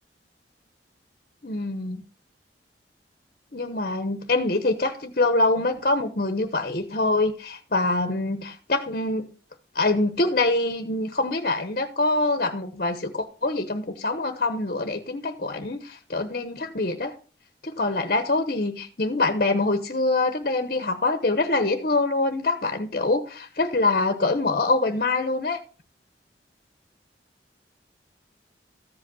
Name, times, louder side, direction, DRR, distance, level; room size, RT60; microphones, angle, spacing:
voice 1, 1.4-2.0 3.5-9.3 9.7-17.1 17.6-25.6, left 2 dB, 50° left, 1.1 m, -25 dB
14.5 x 5.3 x 5.4 m
head